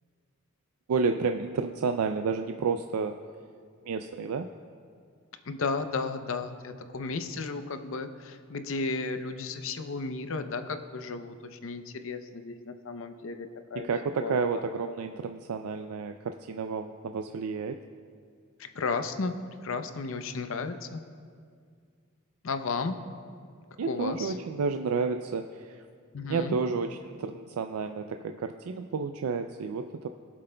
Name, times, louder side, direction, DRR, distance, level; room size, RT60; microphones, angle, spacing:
voice 1, 0.9-3.2 3.8-4.5 13.7-17.8 23.8-25.8 26.3-30.1, right 5 dB, 90° right, 6 dB, 0.4 m, -31 dB
voice 2, 5.4-13.9 14.2-14.4 18.6-19.3 19.6-21.0 22.4-23.0 23.9-24.3 26.1-26.6, left 4 dB, 65° left, 8 dB, 0.6 m, -34 dB
22.5 x 7.6 x 2.2 m, 2.1 s
head